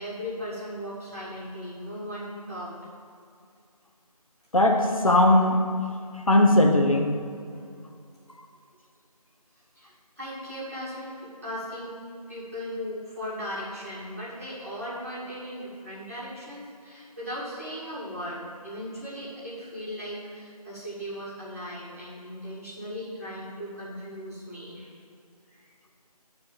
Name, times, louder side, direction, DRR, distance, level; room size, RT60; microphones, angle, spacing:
voice 1, 0.0-2.7 9.7-12.0 12.3-24.9 25.5-25.7, equal, 25° right, -10 dB, 2.7 m, -37 dB
voice 2, 4.5-5.7 6.3-7.2, left 1 dB, 55° left, 2 dB, 1.0 m, -19 dB
10.5 x 4.5 x 7.5 m, 2.4 s
figure-of-eight pair, 180°, 20 cm